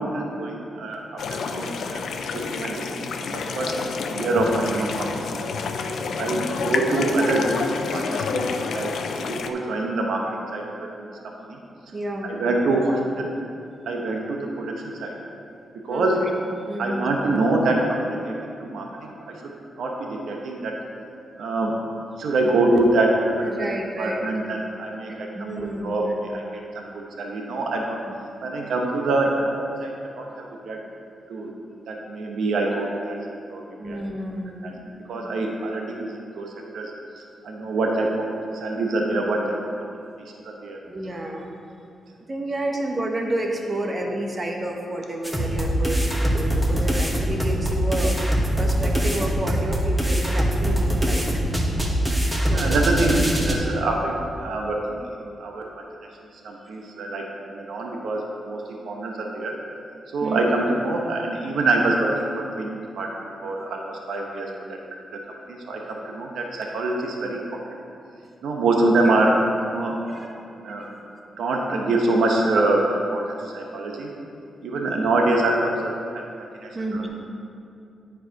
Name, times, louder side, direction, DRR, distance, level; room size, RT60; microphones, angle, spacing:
voice 1, 0.0-2.0 2.3-3.7 4.1-5.4 6.2-7.5 7.9-8.9 9.3-11.6 12.2-13.3 13.9-15.1 15.8-16.2 16.8-20.7 21.4-21.7 22.2-23.2 23.5-23.7 24.0-25.3 25.8-26.0 26.3-26.4 26.7-28.0 28.4-30.8 31.3-31.6 31.9-33.2 33.5-34.0 34.6-34.7 35.1-36.9 37.4-38.3 38.5-39.7 40.2-40.8 52.5-55.8 56.4-59.6 60.1-64.8 65.1-65.2 65.5-67.6 68.4-70.1 70.6-70.9 71.4-74.1 74.6-77.1, right 2 dB, 80° right, 0 dB, 0.9 m, -25 dB
sound 1, 1.2-9.5, left 5 dB, 75° left, 0.4 m, -28 dB
voice 2, 11.9-12.3 15.9-16.2 16.7-17.1 23.4-24.4 25.1-26.0 28.0-28.1 33.8-34.9 40.8-41.5 42.3-48.1 48.6-51.3 52.5-52.8 60.2-60.4 68.8-68.9 70.1-70.3 70.7-70.9 76.7-77.1, right 1 dB, 35° right, 1 dB, 1.1 m, -30 dB
sound 2, 45.2-53.5, equal, 10° right, 1.5 m, -23 dB
9.1 x 4.7 x 4.7 m, 2.5 s
cardioid pair, 65°, 0 cm